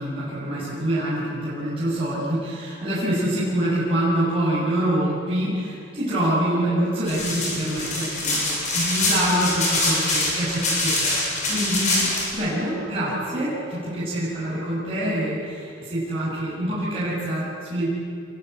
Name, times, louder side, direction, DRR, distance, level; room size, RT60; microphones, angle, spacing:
voice 1, 0.0-11.2 11.5-17.9, right 1 dB, 30° right, -9 dB, 7.2 m, -25 dB
sound 1, 7.1-12.3, left 2 dB, 40° left, 7.4 m, -24 dB
27.5 x 24.0 x 8.1 m, 2.5 s
head